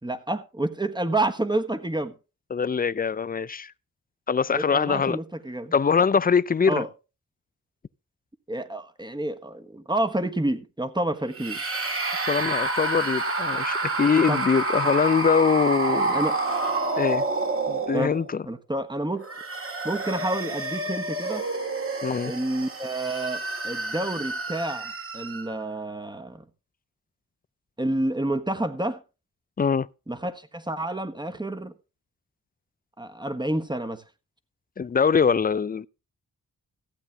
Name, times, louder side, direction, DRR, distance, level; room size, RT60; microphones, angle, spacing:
voice 1, 0.0-2.1 4.5-5.7 6.7-6.9 8.5-11.6 14.3-14.4 15.9-16.4 17.9-18.2 18.5-19.2 19.8-21.4 22.2-26.4 27.8-29.0 30.1-31.7 33.0-34.0, right 1 dB, 15° right, 1.4 m, -29 dB
voice 2, 2.5-3.7 4.3-5.2 5.7-6.8 12.3-16.2 17.0-17.2 17.7-18.4 22.0-22.3 29.6-29.9 34.8-35.9, left 6 dB, 25° left, 0.5 m, -23 dB
sound 1, 11.3-18.4 19.1-25.6, right 2 dB, 40° right, 2.2 m, -28 dB
15.0 x 8.5 x 3.4 m
cardioid pair, 70°, 33 cm